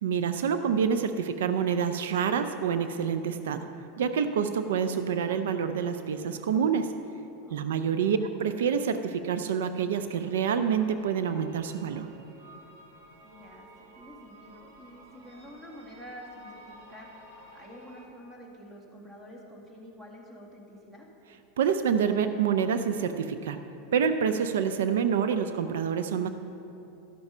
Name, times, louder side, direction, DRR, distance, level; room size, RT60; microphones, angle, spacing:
voice 1, 0.0-3.7 4.0-7.0 7.5-12.1 21.6-23.6 23.9-26.3, right 7 dB, 90° right, 9 dB, 0.4 m, -27 dB
voice 2, 7.4-8.0 13.2-21.1, equal, 15° right, -1 dB, 1.8 m, -48 dB
sound 1, 10.1-18.1, right 1 dB, 65° right, 1.3 m, -53 dB
13.0 x 5.9 x 5.5 m, 2.8 s
supercardioid pair, 135°, 0 cm